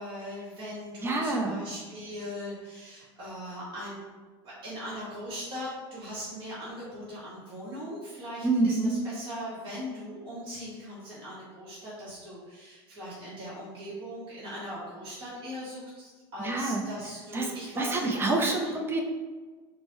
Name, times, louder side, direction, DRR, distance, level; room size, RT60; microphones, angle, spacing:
voice 1, 0.0-4.0 4.4-18.7, equal, 40° right, -9 dB, 1.3 m, -40 dB
voice 2, 1.0-1.6 8.4-9.0 16.4-16.8 17.3-17.5 17.8-19.0, right 2 dB, 15° right, 1 dB, 0.6 m, -27 dB
4.2 x 2.2 x 3.0 m, 1.4 s
supercardioid pair, 105°, 13 cm